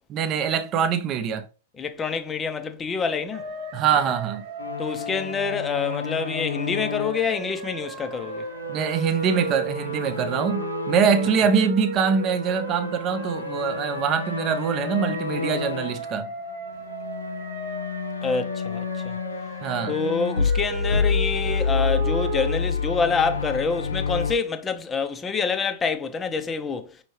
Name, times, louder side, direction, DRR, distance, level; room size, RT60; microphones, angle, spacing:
voice 1, 0.1-1.5 3.7-4.4 8.7-16.3 19.6-20.0, right 7 dB, 35° right, 0.7 m, -24 dB
voice 2, 1.8-3.4 4.8-8.4 18.2-19.2 19.8-26.9, left 5 dB, 20° left, 0.7 m, -27 dB
sound 1, 3.3-22.6, right 4 dB, 55° right, 0.9 m, -35 dB
sound 2, 4.6-11.7 12.0-16.1 16.7-24.3, left 6 dB, 80° left, 0.3 m, -30 dB
5.3 x 2.9 x 3.2 m
figure-of-eight pair, 105°, 0 cm